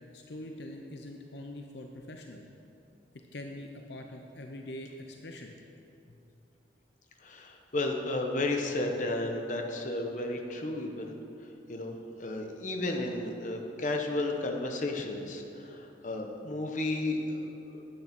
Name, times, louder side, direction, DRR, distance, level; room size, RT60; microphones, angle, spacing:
voice 1, 0.1-2.4 3.3-5.5, left 1 dB, 65° left, 3 dB, 0.7 m, -43 dB
voice 2, 7.2-11.1 11.7-17.8, left 2 dB, 45° left, 2 dB, 1.0 m, -33 dB
10.5 x 8.8 x 6.0 m, 2.8 s
head